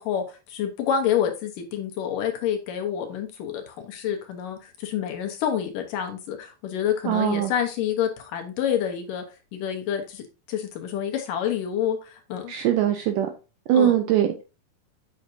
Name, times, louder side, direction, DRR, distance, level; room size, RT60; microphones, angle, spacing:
voice 1, 0.0-9.2 9.5-12.5 13.7-13.9, left 9 dB, 70° left, 2.3 m, -28 dB
voice 2, 7.0-7.5 12.5-13.3 13.7-14.4, right 11 dB, 85° right, 1.9 m, -21 dB
7.7 x 6.5 x 2.7 m
omnidirectional pair, 4.4 m